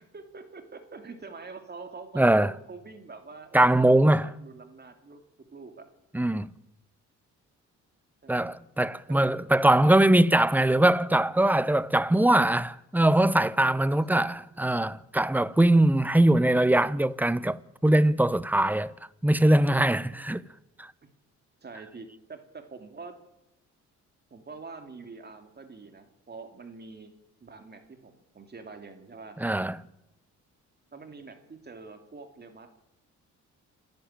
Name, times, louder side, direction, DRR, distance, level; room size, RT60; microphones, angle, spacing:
voice 1, 0.1-5.2 5.5-5.9 8.2-8.5 9.1-9.2 13.9-14.3 20.1-20.2 21.0-21.1 21.6-23.1 24.3-27.1 27.4-29.4 30.9-32.7, right 4 dB, 35° right, 2.8 m, -45 dB
voice 2, 2.2-2.5 3.5-4.3 6.1-6.5 8.3-18.9 19.2-20.4 20.8-20.9 29.4-29.8, right 1 dB, 5° right, 0.8 m, -22 dB
28.0 x 10.5 x 9.0 m
cardioid pair, 90°, 30 cm